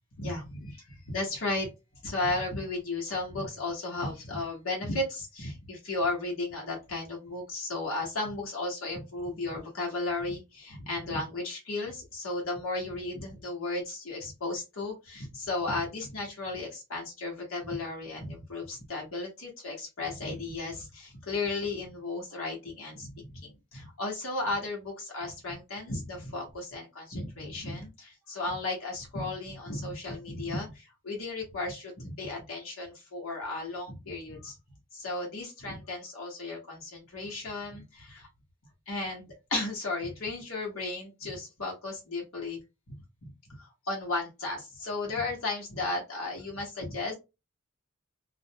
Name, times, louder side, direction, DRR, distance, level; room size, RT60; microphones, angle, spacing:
voice 1, 0.2-1.7 2.0-34.5 34.9-38.3 38.9-42.6 43.2-47.1, left 2 dB, 85° left, -1 dB, 1.0 m, -34 dB
2.4 x 2.1 x 2.7 m, 0.25 s
head